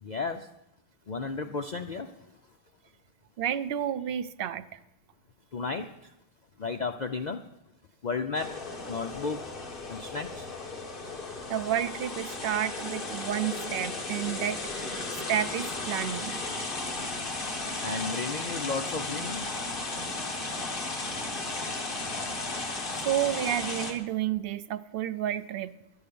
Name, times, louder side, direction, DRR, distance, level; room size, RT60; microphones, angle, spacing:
voice 1, 0.0-0.5 1.1-2.3 5.5-6.1 6.6-7.5 8.0-9.4 9.9-10.5 17.8-19.5, left 4 dB, 70° left, 6 dB, 0.4 m, -34 dB
voice 2, 3.4-4.8 11.5-15.0 15.3-16.4 19.9-20.2 23.0-25.8, right 10 dB, 65° right, 12 dB, 0.5 m, -31 dB
sound 1, 8.3-23.9, left 3 dB, 40° left, 1.6 m, -35 dB
11.5 x 8.9 x 6.9 m, 0.87 s
omnidirectional pair, 1.5 m